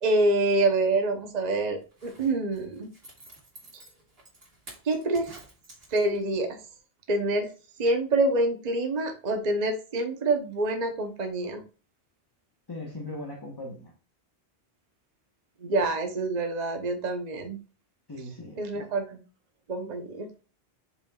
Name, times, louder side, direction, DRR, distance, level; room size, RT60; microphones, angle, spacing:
voice 1, 0.0-2.9 4.8-5.4 5.9-6.6 7.1-7.5 7.8-11.6 15.6-17.6 18.6-19.2 19.7-20.3, right 2 dB, 40° right, 5 dB, 0.9 m, -26 dB
Zipper (clothing), 1.8-6.4 6.8-6.9, right 2 dB, 65° right, 2.4 m, -51 dB
voice 2, 12.7-13.9 18.1-18.9, left 1 dB, 20° left, 0 dB, 1.2 m, -39 dB
7.7 x 5.4 x 2.4 m, 0.36 s
omnidirectional pair, 1.1 m